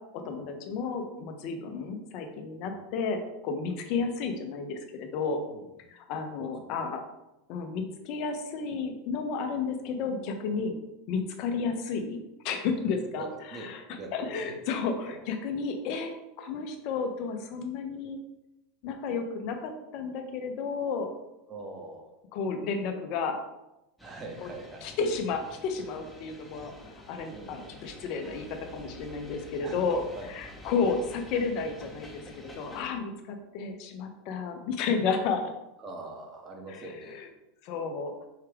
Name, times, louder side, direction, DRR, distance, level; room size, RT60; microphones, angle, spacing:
voice 1, 0.1-5.4 5.9-7.0 7.5-10.8 11.1-13.3 13.5-13.8 14.1-18.2 18.8-21.1 22.3-23.4 24.4-24.5 24.8-30.0 30.3-35.5 36.7-37.3 37.6-38.1, left 5 dB, 50° left, 6 dB, 0.7 m, -32 dB
voice 2, 5.5-5.8 6.4-6.8 12.8-14.6 15.1-15.2 21.5-22.1 24.0-24.9 27.3-27.7 29.6-29.9 30.1-30.3 35.8-37.2, right 2 dB, 30° right, 1 dB, 1.1 m, -43 dB
sound 1, 24.0-32.8, left 1 dB, 5° left, 0.9 m, -48 dB
4.7 x 3.3 x 3.4 m, 0.93 s
figure-of-eight pair, 85°, 0 cm